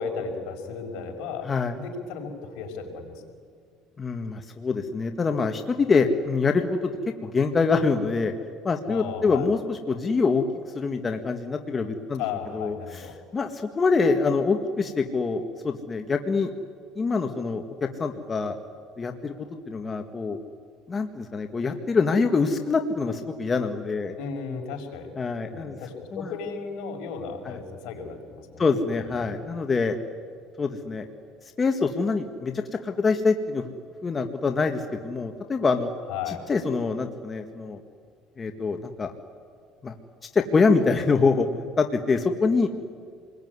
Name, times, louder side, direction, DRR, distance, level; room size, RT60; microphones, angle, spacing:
voice 1, 0.0-1.5 1.7-3.2 8.9-9.5 12.2-13.2 24.2-25.1 25.5-29.4 36.1-36.4, left 6 dB, 75° left, 3 dB, 5.7 m, -35 dB
voice 2, 1.4-1.8 4.0-6.9 7.2-8.3 8.6-10.5 10.7-12.2 12.5-16.5 17.0-17.6 18.0-18.6 19.0-20.4 20.9-24.2 25.2-25.8 26.1-26.3 27.5-27.6 28.6-30.0 30.6-31.1 31.6-32.5 32.8-33.7 34.0-35.9 36.3-37.8 38.4-39.1 39.8-39.9 40.3-41.5 41.8-42.7, left 4 dB, 25° left, 5 dB, 1.8 m, -25 dB
28.0 x 21.5 x 9.7 m, 2.1 s
cardioid pair, 115°, 0 cm